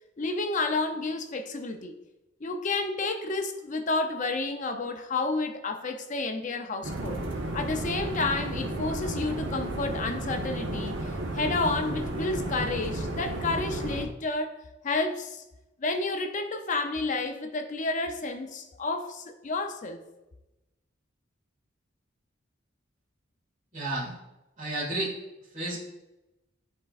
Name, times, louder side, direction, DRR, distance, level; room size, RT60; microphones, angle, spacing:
voice 1, 0.2-1.9 2.4-7.2 7.5-14.6 14.8-15.4 15.8-20.0, left 3 dB, 40° left, 0.5 m, -30 dB
sound 1, 6.8-14.0, right 1 dB, 75° right, 1.0 m, -33 dB
voice 2, 23.7-24.1 24.6-25.2 25.5-25.8, right 2 dB, 40° right, 1.9 m, -31 dB
10.5 x 4.2 x 2.4 m
head